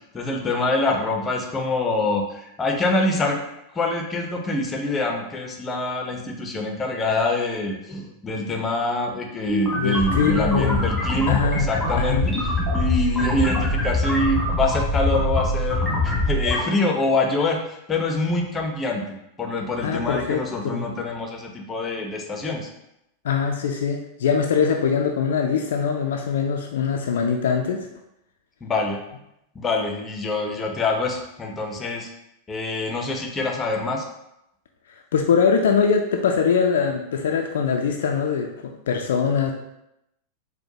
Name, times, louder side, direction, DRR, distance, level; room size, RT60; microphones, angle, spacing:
voice 1, 0.1-3.4 3.7-22.7 28.6-29.0 29.5-32.1 32.5-34.0, left 2 dB, 20° left, 2 dB, 0.6 m, -25 dB
sound 1, 9.5-16.6, left 1 dB, ahead, 1.3 m, -24 dB
voice 2, 9.7-10.8 11.3-11.7 12.0-12.3 19.8-20.4 20.7-20.9 23.2-27.9 35.1-39.5, left 6 dB, 60° left, 2 dB, 0.3 m, -22 dB
4.4 x 2.1 x 2.7 m, 0.83 s
figure-of-eight pair, 90°, 0 cm